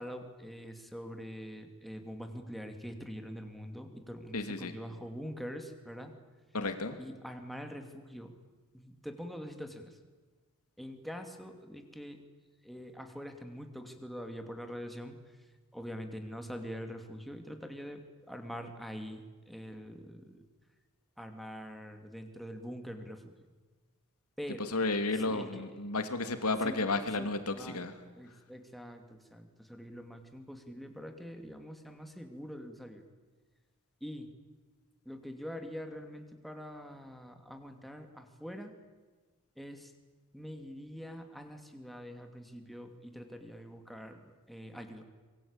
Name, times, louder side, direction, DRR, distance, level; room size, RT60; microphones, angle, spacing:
voice 1, 0.0-6.1 7.0-8.3 8.7-10.0 10.8-12.2 12.6-20.4 21.2-23.5 24.4-24.7 25.1-25.6 26.6-26.9 27.2-27.9 28.2-33.0 34.0-34.3 35.0-38.7 39.6-39.9 40.3-45.0, equal, ahead, 5 dB, 2.5 m, -44 dB
voice 2, 4.3-4.7 6.5-7.0 24.7-27.9, left 3 dB, 85° left, 8 dB, 2.7 m, -32 dB
25.0 x 23.0 x 8.9 m, 1.4 s
head